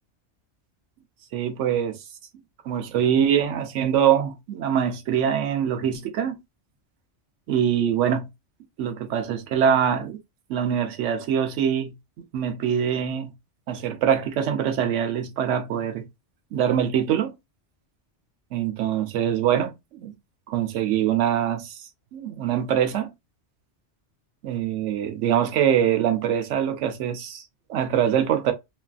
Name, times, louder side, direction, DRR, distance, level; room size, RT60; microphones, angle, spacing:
voice 1, 1.3-2.0 2.6-6.4 7.5-8.3 8.8-10.2 10.5-13.3 13.7-16.1 16.5-17.3 18.5-20.1 20.5-23.1 24.4-28.5, right 9 dB, 85° right, 1.0 m, -24 dB
3.1 x 2.4 x 2.3 m
omnidirectional pair, 1.2 m